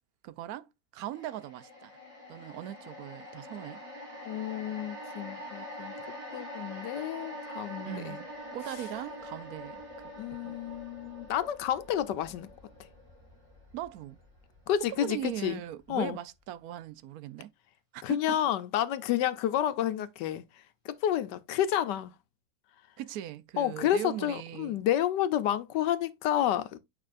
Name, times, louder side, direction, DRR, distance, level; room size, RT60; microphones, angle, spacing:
voice 1, 0.2-2.0 2.3-3.8 7.8-8.3 8.5-9.8 10.4-10.5 13.7-14.2 14.9-17.5 17.9-18.4 23.0-24.8, right 12 dB, 70° right, 0.9 m, -39 dB
sound 1, 1.1-15.5 15.8-16.0, equal, 15° right, 2.5 m, -45 dB
voice 2, 4.2-6.0 6.3-8.2 10.2-12.5 12.8-12.9 14.7-15.6 15.9-16.2 18.0-22.1 23.6-26.8, left 11 dB, 75° left, 1.3 m, -30 dB
8.5 x 5.0 x 2.5 m
omnidirectional pair, 2.0 m